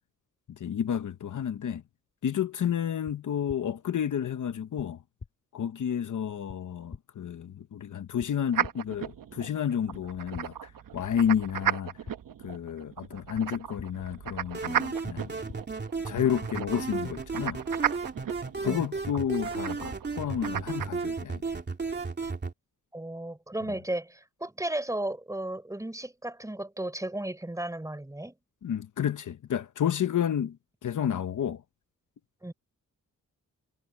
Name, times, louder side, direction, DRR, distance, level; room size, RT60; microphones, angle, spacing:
voice 1, 0.6-1.8 2.2-5.0 5.5-11.9 12.4-15.3 16.0-17.6 18.6-21.4 28.6-30.6 30.8-31.6, left 9 dB, 65° left, 0.9 m, -30 dB
sound 1, 3.0-3.1 3.5-3.6 4.8-4.9 5.2-5.3 6.5-6.6 6.9-7.0 8.2-8.3 8.6-8.7 9.9-10.0 10.3-10.4 11.6-11.7 12.0-12.1 13.3-13.4 13.8-13.9 15.0-15.1 15.5-15.6, left 4 dB, 40° left, 2.4 m, -43 dB
sound 2, 8.5-20.9, right 9 dB, 80° right, 1.0 m, -35 dB
sound 3, 14.5-22.5, right 4 dB, 30° right, 2.9 m, -34 dB
voice 2, 22.9-28.3 32.4-32.5, right 1 dB, 10° right, 5.0 m, -34 dB
wide cardioid pair, 175°, 33 cm